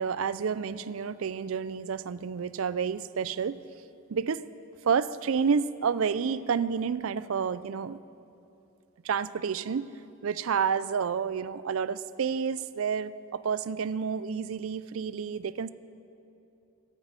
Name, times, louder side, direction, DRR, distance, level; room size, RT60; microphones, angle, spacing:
voice 1, 0.0-3.6 4.1-4.4 4.9-8.0 9.0-9.9 10.2-15.7, right 6 dB, 70° right, 16 dB, 0.4 m, -29 dB
13.0 x 9.2 x 8.1 m, 2.7 s
head